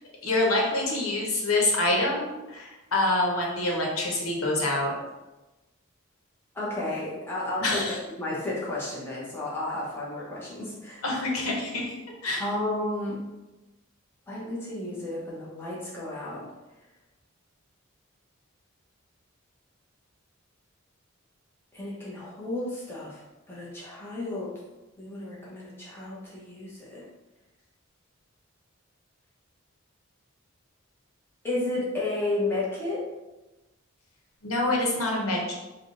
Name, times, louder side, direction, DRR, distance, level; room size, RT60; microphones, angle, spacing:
voice 1, 0.2-4.9 7.6-7.9 11.0-11.9 12.2-12.4 34.4-35.6, left 2 dB, 85° left, -2 dB, 1.0 m, -26 dB
voice 2, 6.5-11.0 12.4-13.2 14.3-16.5 21.7-24.5 25.0-27.0 31.4-33.0, left 2 dB, 10° left, -7 dB, 0.9 m, -32 dB
3.6 x 2.3 x 3.7 m, 1.1 s
head